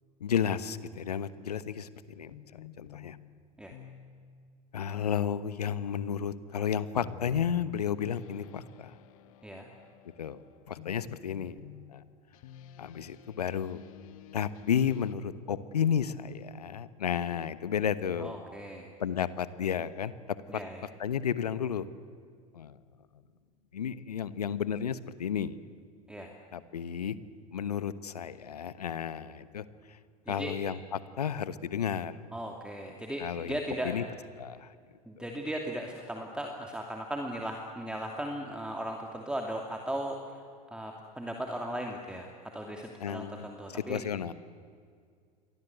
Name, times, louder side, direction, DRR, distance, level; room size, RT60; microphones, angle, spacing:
voice 1, 0.2-1.9 2.2-3.2 4.7-9.0 10.2-10.4 10.7-11.6 11.9-12.0 12.8-13.8 14.3-18.4 19.0-20.6 21.0-21.9 22.5-22.8 23.7-25.6 26.5-27.2 27.5-30.0 30.3-32.2 33.2-33.6 33.8-34.0 34.4-34.7 35.2-35.3 43.0-44.3, left 8 dB, 80° left, 15 dB, 1.2 m, -32 dB
sound 1, 2.3-15.1, left 11 dB, 60° left, 1.5 m, -50 dB
voice 2, 18.2-18.9 20.5-20.8 26.1-26.3 30.3-30.5 32.3-34.0 35.0-40.4 40.7-42.3 42.5-44.0, right 1 dB, 5° right, 2 dB, 2.8 m, -37 dB
29.0 x 23.0 x 8.1 m, 2.1 s
figure-of-eight pair, 85°, 20 cm